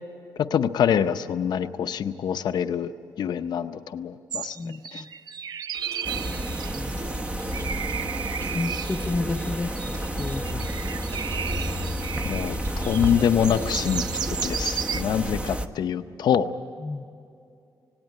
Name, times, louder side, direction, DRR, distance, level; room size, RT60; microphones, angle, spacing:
voice 1, 0.4-2.9 3.2-4.6 4.9-5.0 12.2-16.5, left 8 dB, 70° left, 9 dB, 0.7 m, -25 dB
sound 1, 4.3-12.6 12.8-15.0, right 8 dB, 65° right, 0.5 m, -34 dB
voice 2, 4.6-5.1 6.8-7.2 8.4-10.7 16.8-17.0, left 3 dB, 25° left, 2 dB, 0.6 m, -32 dB
Trickle dribble / Fill (with liquid), 5.7-14.7, right 2 dB, 40° right, 1.6 m, -44 dB
sound 2, 6.0-15.7, right 1 dB, 15° right, 0.9 m, -30 dB
18.5 x 17.5 x 9.1 m, 2.6 s
cardioid pair, 120°, 7 cm